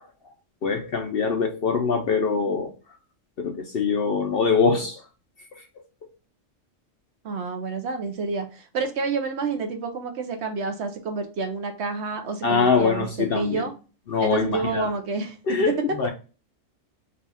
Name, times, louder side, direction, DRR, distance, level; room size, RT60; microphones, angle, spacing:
voice 1, 0.6-2.7 3.4-5.0 5.5-5.6 12.4-13.7 14.1-14.9 15.5-16.1, left 5 dB, 60° left, 5 dB, 0.7 m, -23 dB
voice 2, 7.2-13.7 14.2-15.4, right 4 dB, 65° right, 6 dB, 0.8 m, -29 dB
4.1 x 2.4 x 4.0 m, 0.34 s
omnidirectional pair, 1.4 m